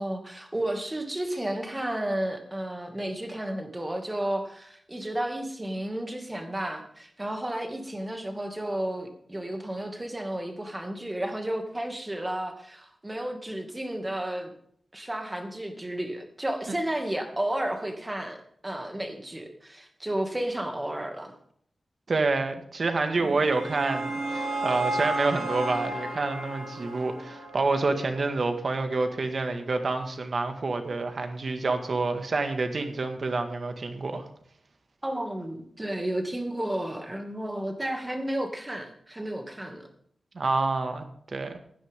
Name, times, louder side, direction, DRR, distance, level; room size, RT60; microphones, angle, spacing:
voice 1, 0.0-14.5 14.9-21.3 23.2-23.3 35.0-39.9, right 1 dB, 20° right, 4 dB, 2.3 m, -32 dB
voice 2, 22.1-34.3 40.3-41.6, right 3 dB, 55° right, 7 dB, 1.9 m, -28 dB
sound 1, 23.2-28.3, right 2 dB, 70° right, 4.9 m, -33 dB
16.5 x 10.5 x 3.7 m, 0.63 s
wide cardioid pair, 90°, 0 cm